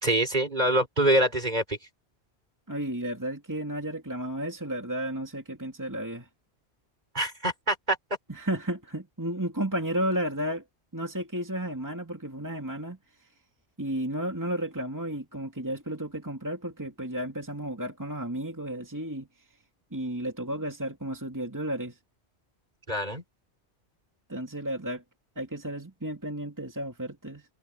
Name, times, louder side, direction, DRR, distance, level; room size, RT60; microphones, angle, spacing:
voice 1, 0.0-1.8 7.1-8.0 22.9-23.2, right 1 dB, 40° right, 4.9 m, -25 dB
voice 2, 2.7-6.3 8.3-10.6 10.9-13.0 13.8-19.3 19.9-22.0 24.3-25.0 25.4-27.5, right 1 dB, 15° right, 2.5 m, -33 dB
omnidirectional pair, 1.1 m